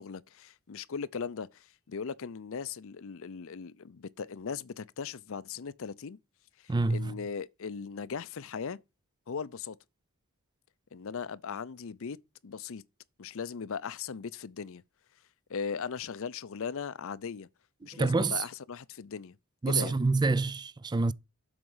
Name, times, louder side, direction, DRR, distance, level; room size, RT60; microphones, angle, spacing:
voice 1, 0.0-6.2 6.6-8.8 9.3-9.8 10.9-12.2 12.4-12.8 13.2-14.8 15.5-17.5 17.8-19.4 19.7-20.0, left 6 dB, 65° left, 0.5 m, -38 dB
voice 2, 6.7-7.2 17.9-18.4 19.6-21.1, right 3 dB, 20° right, 0.4 m, -27 dB
7.8 x 5.2 x 5.5 m
head